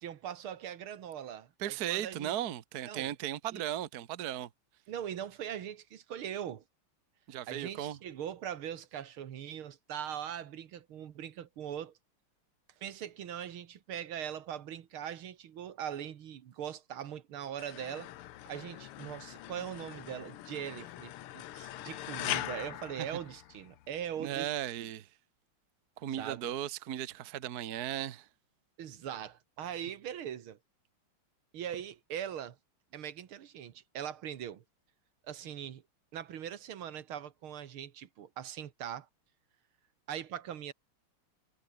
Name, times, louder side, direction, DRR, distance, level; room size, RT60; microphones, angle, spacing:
voice 1, 0.0-2.3 2.9-3.1 3.5-3.7 4.9-6.6 7.5-11.9 12.8-18.1 18.5-24.5 24.8-24.9 26.2-26.5 28.8-30.6 31.5-32.6 32.9-34.6 35.2-35.8 36.1-39.1 40.1-40.7, right 9 dB, 70° right, 2.1 m, -41 dB
voice 2, 1.6-4.5 7.3-8.0 23.0-23.1 24.2-25.1 26.0-28.3, right 11 dB, 50° right, 1.4 m, -36 dB
sound 1, 17.6-23.9, left 14 dB, 90° left, 1.8 m, -42 dB
omnidirectional pair, 2.4 m